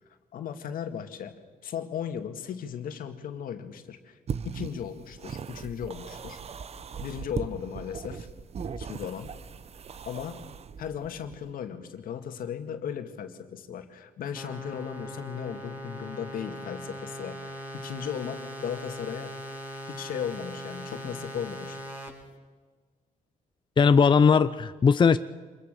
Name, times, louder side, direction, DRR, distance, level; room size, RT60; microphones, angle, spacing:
voice 1, 0.3-1.4 1.6-4.2 4.4-6.4 7.0-8.3 8.8-9.3 10.0-10.4 10.8-19.3 19.9-21.8, left 8 dB, 80° left, 7 dB, 2.1 m, -36 dB
sound 1, 4.3-11.5, right 6 dB, 45° right, 0.9 m, -39 dB
sound 2, 14.4-22.1, equal, 15° right, 6.2 m, -40 dB
voice 2, 23.8-25.2, left 6 dB, 35° left, 12 dB, 0.7 m, -19 dB
26.0 x 21.5 x 6.9 m, 1.4 s
cardioid pair, 105°, 14 cm